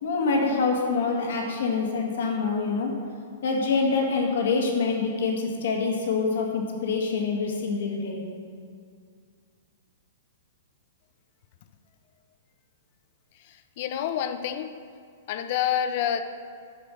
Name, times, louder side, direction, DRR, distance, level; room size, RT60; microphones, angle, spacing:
voice 1, 0.0-2.9 3.4-8.2, left 4 dB, 70° left, 0 dB, 1.8 m, -25 dB
voice 2, 13.8-14.7 15.3-16.2, left 9 dB, 55° left, 10 dB, 0.6 m, -27 dB
9.7 x 5.1 x 6.3 m, 2.2 s
hypercardioid pair, 120°, 0 cm